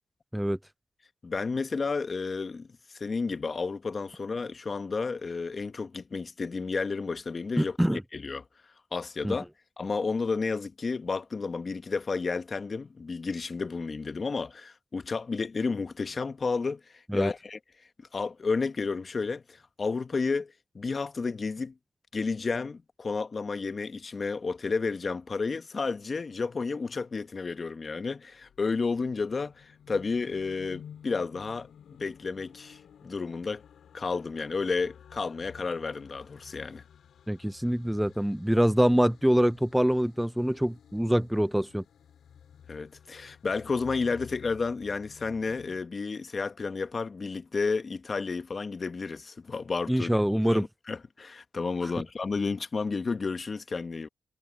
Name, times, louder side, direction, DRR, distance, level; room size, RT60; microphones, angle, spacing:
voice 1, 1.2-2.7 2.9-8.4 8.9-9.5 9.8-17.6 18.1-21.7 22.1-31.7 32.0-33.6 33.9-36.8 42.7-50.1 50.5-54.1, left 4 dB, 50° left, 1.4 m, -31 dB
voice 2, 7.6-8.0 9.2-9.3 17.1-17.3 37.3-41.8 49.9-50.7, equal, 5° right, 0.6 m, -25 dB
sound 1, 28.0-45.8, left 8 dB, 80° left, 5.1 m, -53 dB
supercardioid pair, 50°, 0 cm